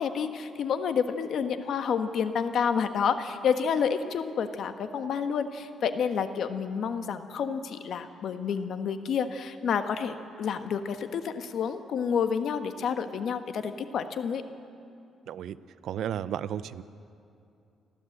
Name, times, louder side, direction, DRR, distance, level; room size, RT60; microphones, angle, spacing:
voice 1, 0.0-14.4, left 6 dB, 65° left, 8 dB, 1.3 m, -29 dB
voice 2, 15.3-15.6 15.8-16.8, right 10 dB, 75° right, 14 dB, 0.6 m, -33 dB
30.0 x 12.0 x 8.0 m, 2.6 s
cardioid pair, 90°, 0 cm